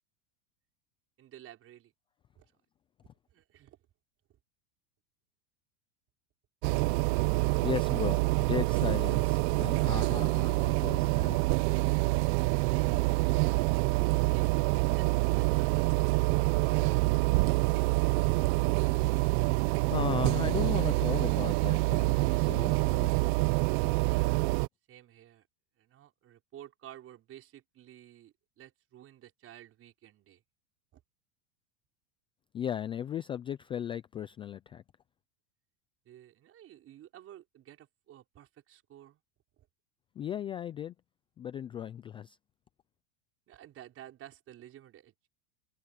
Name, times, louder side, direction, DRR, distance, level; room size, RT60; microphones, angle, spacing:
voice 1, 1.2-1.9 2.3-2.5 3.3-3.8 14.2-17.1 24.0-24.4 24.9-25.5 25.8-30.4 30.9-31.0 36.0-39.2 39.6-39.7 43.5-45.3, right 12 dB, 35° right, 5.0 m, -52 dB
sound 1, 6.6-24.7, right 24 dB, 50° right, 0.7 m, -26 dB
voice 2, 7.6-11.4 19.6-23.2 23.9-24.1 32.5-34.8 40.2-40.9 41.4-42.4, left 9 dB, 15° left, 0.3 m, -36 dB
supercardioid pair, 135°, 41 cm